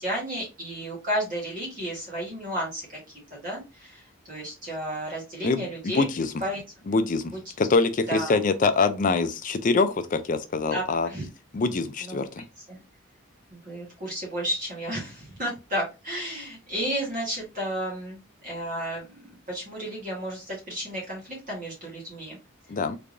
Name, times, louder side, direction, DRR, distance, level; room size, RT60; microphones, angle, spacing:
voice 1, 0.0-3.0 3.3-6.0 6.4-6.6 8.1-8.4 10.7-11.3 12.0-12.3 12.7-12.8 13.5-22.4, equal, 40° right, 1.4 m, -32 dB
voice 2, 5.4-6.3 6.9-11.1 11.5-12.4 22.7-23.0, left 3 dB, 40° left, 0.4 m, -24 dB
3.4 x 3.3 x 2.5 m
head